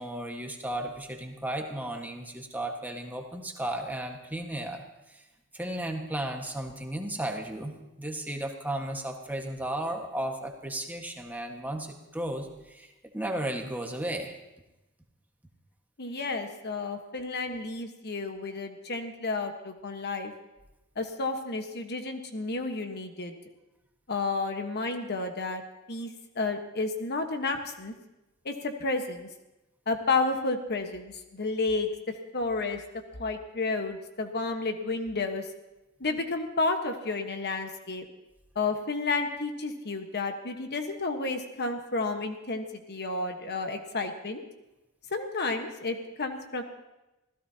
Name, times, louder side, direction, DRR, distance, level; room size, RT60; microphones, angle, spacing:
voice 1, 0.0-5.2 5.5-7.7 8.0-14.3, right 1 dB, 10° right, 2 dB, 1.5 m, -34 dB
voice 2, 16.0-20.3 21.0-23.3 24.1-25.6 25.9-27.9 28.4-29.3 29.9-31.9 32.3-32.8 33.1-35.5 36.0-38.0 38.5-44.4 45.1-46.6, left 3 dB, 50° left, 5 dB, 1.3 m, -31 dB
26.5 x 16.0 x 2.9 m, 0.98 s
head